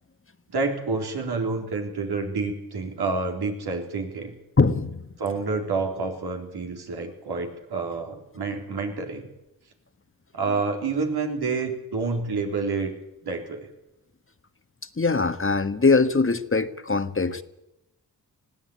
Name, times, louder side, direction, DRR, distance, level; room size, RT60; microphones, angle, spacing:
voice 1, 0.5-4.4 5.2-9.3 10.3-12.9 13.2-13.7, right 4 dB, 75° right, 3 dB, 4.0 m, -28 dB
voice 2, 4.6-5.1 15.0-17.4, left 4 dB, 35° left, 11 dB, 1.5 m, -22 dB
20.0 x 15.0 x 8.7 m, 0.90 s
cardioid pair, 45°, 39 cm